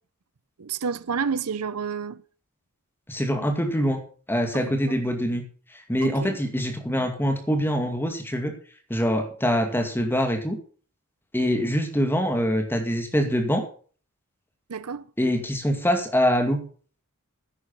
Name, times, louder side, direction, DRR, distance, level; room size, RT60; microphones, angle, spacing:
voice 1, 0.6-2.2 4.5-4.9 6.0-6.4 14.7-15.0, right 6 dB, 80° right, 0.7 m, -30 dB
voice 2, 3.1-4.0 4.3-5.4 5.7-8.6 8.9-10.6 11.3-13.6 15.2-16.7, equal, 10° left, 2.3 m, -24 dB
11.0 x 9.3 x 5.5 m
head